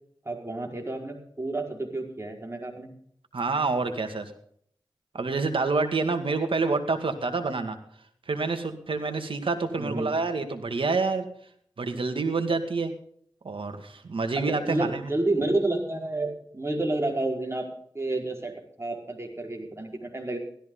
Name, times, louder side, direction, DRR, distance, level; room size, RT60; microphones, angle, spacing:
voice 1, 0.2-2.9 9.8-10.1 14.3-17.7 17.9-18.5 18.8-20.4, right 2 dB, 30° right, 1 dB, 5.0 m, -30 dB
voice 2, 3.3-4.3 5.1-7.8 8.3-11.3 11.8-12.9 13.4-15.0, right 3 dB, 85° right, 7 dB, 2.1 m, -27 dB
16.5 x 13.5 x 4.0 m, 0.63 s
cardioid pair, 40°, 9 cm